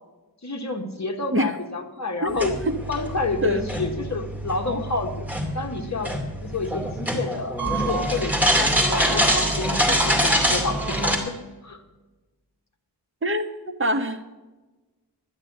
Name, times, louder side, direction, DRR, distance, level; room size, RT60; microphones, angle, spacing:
voice 1, 0.4-2.5 2.9-11.3 11.6-11.8, left 3 dB, 40° left, 3 dB, 1.7 m, -29 dB
voice 2, 2.2-2.8 3.4-3.6 13.2-14.3, equal, 30° right, 5 dB, 1.3 m, -25 dB
sound 1, 2.3-11.2, equal, 5° right, 2.5 m, -24 dB
12.0 x 9.9 x 6.7 m, 1.1 s
wide cardioid pair, 110°, 40 cm